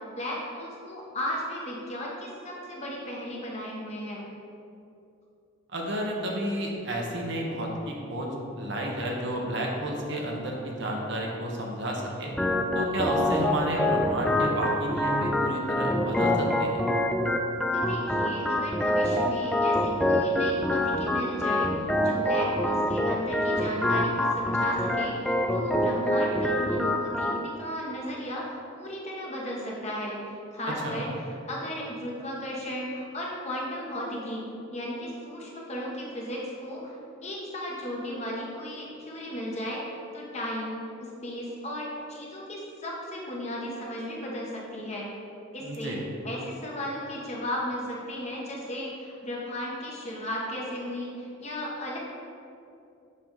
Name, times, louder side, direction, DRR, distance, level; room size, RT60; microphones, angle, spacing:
voice 1, 0.1-4.2 17.7-34.5 34.7-39.8 40.1-45.1 45.5-46.0 46.2-52.0, equal, 30° left, -3 dB, 1.2 m, -35 dB
voice 2, 5.7-8.3 8.6-12.3 12.7-16.8 30.8-31.0 45.6-46.0, right 1 dB, 55° right, -1 dB, 1.1 m, -31 dB
Organ, 12.4-27.4, left 1 dB, 5° left, 0.3 m, -26 dB
7.6 x 5.8 x 3.9 m, 2.7 s
head